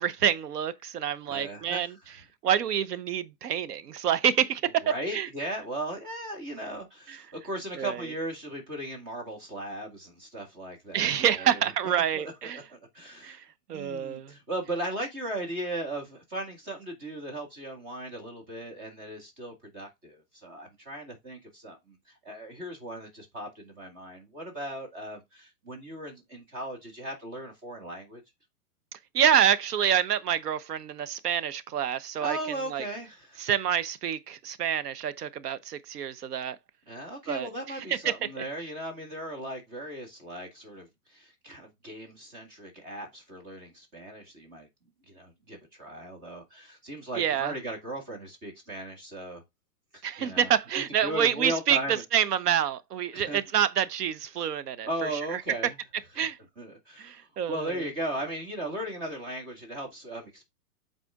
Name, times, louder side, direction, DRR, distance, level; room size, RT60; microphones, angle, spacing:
voice 1, 0.0-1.9 2.4-5.3 7.8-8.0 10.9-12.6 13.2-13.4 13.7-14.3 28.9-32.4 32.7-32.8 33.4-36.6 37.3-37.5 37.9-38.1 47.1-47.5 50.0-55.4 56.2-56.4 57.0-57.8, right 9 dB, 85° right, 1.0 m, -27 dB
voice 2, 1.3-1.9 4.8-13.4 13.7-22.0 22.2-28.2 32.2-33.5 36.9-44.7 45.1-49.4 49.9-52.0 53.1-53.4 54.9-55.7 56.6-60.4, right 1 dB, 20° right, 2.0 m, -37 dB
8.1 x 4.2 x 3.6 m
hypercardioid pair, 175°, 46 cm